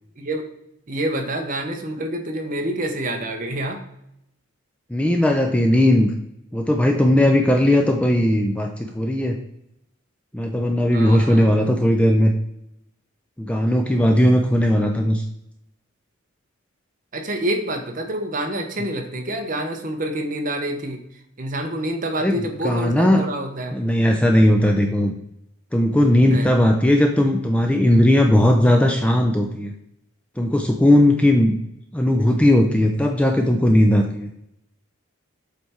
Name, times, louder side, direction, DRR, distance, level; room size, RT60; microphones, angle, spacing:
voice 1, 0.2-0.5 0.9-3.8 7.7-7.8 10.9-11.5 17.1-21.0 21.4-23.8 26.3-26.5, right 1 dB, 40° right, 4 dB, 0.8 m, -27 dB
voice 2, 4.9-6.1 6.5-9.4 10.3-12.3 13.4-15.2 22.2-23.2 23.7-25.1 25.7-29.7 30.4-31.6 31.9-34.3, left 1 dB, 5° left, 3 dB, 0.4 m, -17 dB
7.7 x 3.4 x 4.3 m, 0.80 s
head